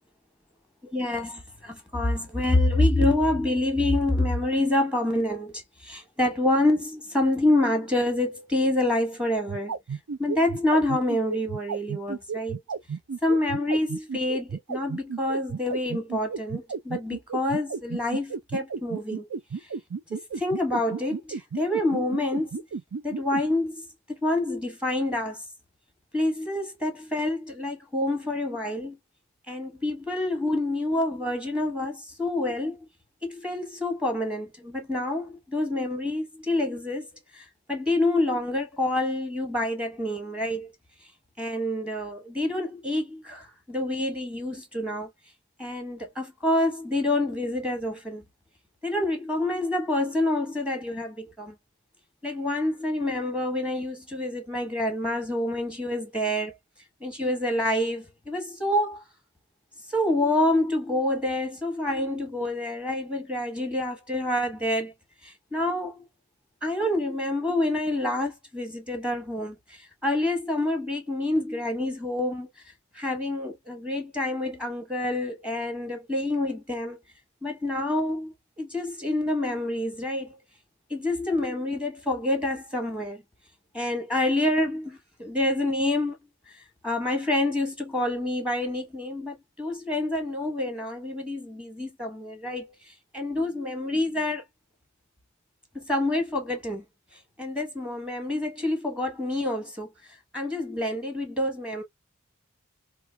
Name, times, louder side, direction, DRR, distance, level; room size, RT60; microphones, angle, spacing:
voice 1, 0.9-9.7 10.2-12.6 13.2-19.3 19.6-19.7 20.1-22.7 23.0-25.4 26.1-29.0 29.5-32.8 33.2-40.7 41.0-41.1 41.4-45.1 45.6-48.2 48.8-51.5 52.2-56.5 57.0-59.0 59.9-64.9 65.2-66.1 66.6-72.5 72.9-77.0 77.4-80.4 80.9-83.2 83.7-86.2 86.5-94.4 95.7-96.8 97.1-101.8, left 1 dB, 5° right, 1.0 m, -27 dB
sound 1, 9.4-23.4, right 5 dB, 75° right, 0.5 m, -32 dB
4.3 x 2.3 x 2.2 m
head